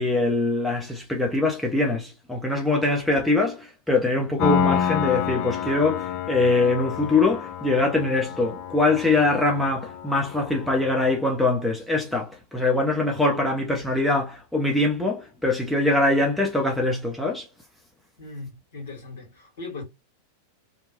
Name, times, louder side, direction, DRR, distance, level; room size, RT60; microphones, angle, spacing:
voice 1, 0.0-17.5, left 2 dB, ahead, 0.7 m, -23 dB
Piano, 4.4-11.1, left 8 dB, 45° left, 0.3 m, -29 dB
voice 2, 18.2-19.8, left 3 dB, 60° left, 1.6 m, -38 dB
2.9 x 2.3 x 2.9 m
figure-of-eight pair, 90°, 0 cm